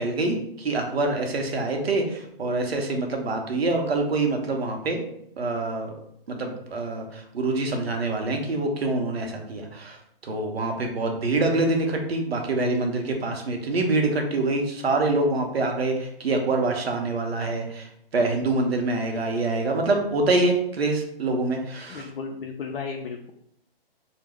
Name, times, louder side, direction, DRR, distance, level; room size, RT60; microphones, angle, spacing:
voice 1, 0.0-5.1 5.4-5.9 6.3-10.0 10.2-17.9 18.1-22.1, right 2 dB, 85° right, 3 dB, 0.7 m, -25 dB
voice 2, 21.9-23.3, left 5 dB, 70° left, 2 dB, 0.4 m, -34 dB
2.3 x 2.0 x 3.3 m, 0.72 s
hypercardioid pair, 150°, 30 cm